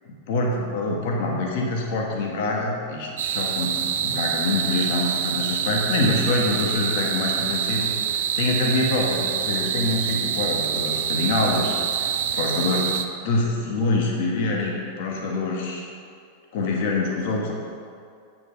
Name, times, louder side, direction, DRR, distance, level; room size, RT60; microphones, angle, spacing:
voice 1, 0.1-12.1 12.4-12.9 13.2-15.8 16.5-17.5, left 2 dB, 50° left, -1 dB, 1.1 m, -25 dB
sound 1, 3.2-13.0, right 8 dB, 60° right, 0.4 m, -26 dB
8.0 x 4.9 x 5.4 m, 2.3 s
figure-of-eight pair, 90°, 0 cm